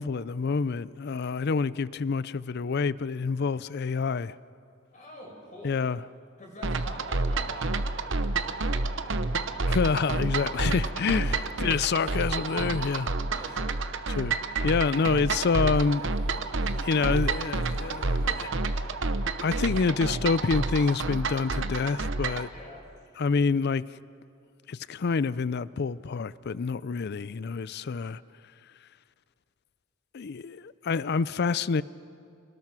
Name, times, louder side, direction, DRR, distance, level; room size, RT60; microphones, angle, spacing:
voice 1, 0.0-4.4 5.6-6.0 9.7-13.1 14.2-14.4 14.6-16.0 16.4-18.5 19.4-22.5 23.2-23.8 24.7-28.2 30.1-31.8, left 5 dB, 55° left, 0.4 m, -27 dB
voice 2, 4.9-5.7 6.4-9.3 13.2-13.9 22.5-22.8, left 1 dB, 40° left, 5.1 m, -47 dB
sound 1, 6.6-22.5, right 3 dB, 65° right, 0.9 m, -29 dB
28.0 x 19.0 x 6.1 m
head